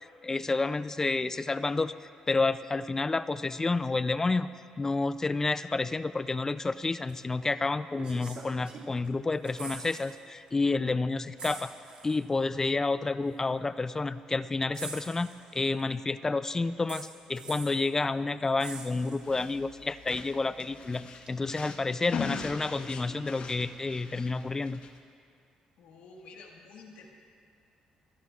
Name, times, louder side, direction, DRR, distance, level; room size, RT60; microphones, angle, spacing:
voice 1, 0.2-1.9 2.3-4.5 4.8-11.7 12.0-24.8, left 3 dB, 25° left, 14 dB, 0.3 m, -30 dB
sound 1, 7.1-7.2 8.0-9.1 9.3-10.2 10.5-10.6 11.4-12.2 13.3-13.4 14.7-15.8 16.9-17.8 18.6-19.5 21.3-21.4, right 4 dB, 60° right, 2.2 m, -44 dB
sound 2, 19.2-25.0, left 5 dB, 60° left, 1.0 m, -40 dB
voice 2, 25.8-27.1, left 3 dB, 85° left, 1 dB, 1.6 m, -50 dB
28.0 x 12.0 x 2.4 m, 2.4 s
cardioid pair, 85°, 2 cm